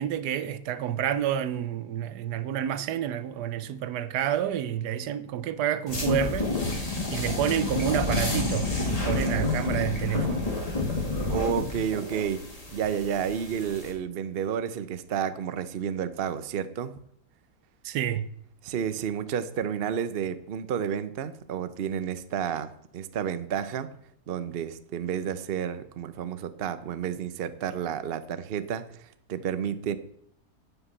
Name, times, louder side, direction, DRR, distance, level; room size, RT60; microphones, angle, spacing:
voice 1, 0.0-6.5 7.1-10.5 17.8-18.3, right 10 dB, 80° right, 1.2 m, -29 dB
sound 1, 5.9-13.9, left 3 dB, 20° left, 2.4 m, -29 dB
voice 2, 11.3-12.4 12.7-17.0 18.6-23.9 24.3-28.9 29.3-30.0, right 8 dB, 50° right, 0.7 m, -31 dB
11.0 x 6.0 x 8.2 m
omnidirectional pair, 1.8 m